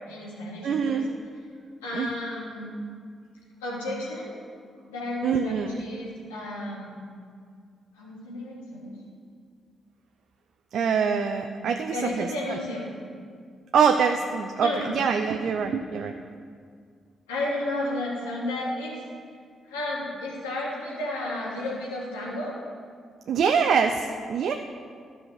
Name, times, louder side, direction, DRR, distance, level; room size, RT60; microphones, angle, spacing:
voice 1, 0.1-1.0 1.8-2.7 3.6-4.3 4.9-7.0 8.0-8.9 11.9-12.9 14.6-15.0 17.3-18.9 19.7-22.5, left 1 dB, 90° left, -6 dB, 2.6 m, -32 dB
voice 2, 0.6-1.1 1.9-2.1 5.2-5.8 10.7-12.6 13.7-16.1 23.3-24.5, right 6 dB, 65° right, 5 dB, 0.6 m, -24 dB
13.0 x 5.7 x 6.6 m, 2.1 s
hypercardioid pair, 45°, 0 cm